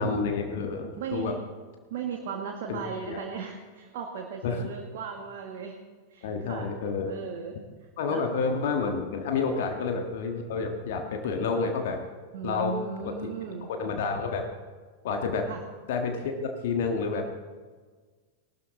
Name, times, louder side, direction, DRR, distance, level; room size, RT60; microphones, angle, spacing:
voice 1, 0.0-1.3 2.7-3.2 4.4-4.7 6.2-7.1 8.0-12.0 12.4-12.7 13.0-13.3 13.7-14.5 15.0-15.4 15.9-17.3, left 4 dB, 55° left, 4 dB, 1.5 m, -29 dB
voice 2, 0.9-1.4 1.9-5.8 6.1-6.7 7.1-7.5 8.1-8.2 9.6-9.7 12.3-13.7 15.5-15.6, right 6 dB, 50° right, 2 dB, 1.6 m, -36 dB
18.5 x 12.5 x 3.9 m, 1.4 s
figure-of-eight pair, 90°, 0 cm